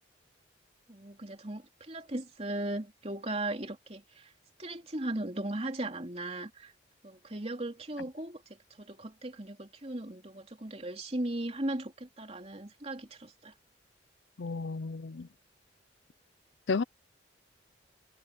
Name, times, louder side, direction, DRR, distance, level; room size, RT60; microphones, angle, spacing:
voice 1, 0.9-4.3 4.6-6.7 7.0-8.4 8.8-13.5, right 1 dB, 35° right, 3.1 m, -37 dB
voice 2, 14.4-15.3 16.7-16.8, left 4 dB, 70° left, 0.6 m, -32 dB
head